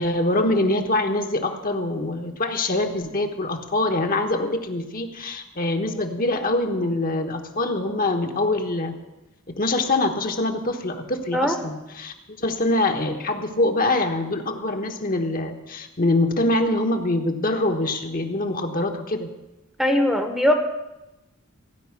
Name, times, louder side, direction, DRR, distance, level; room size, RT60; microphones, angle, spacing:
voice 1, 0.0-8.9 9.5-19.3, left 2 dB, 40° left, 4 dB, 1.1 m, -24 dB
voice 2, 19.8-20.5, left 1 dB, ahead, 5 dB, 1.0 m, -20 dB
16.0 x 5.5 x 9.7 m, 1.0 s
head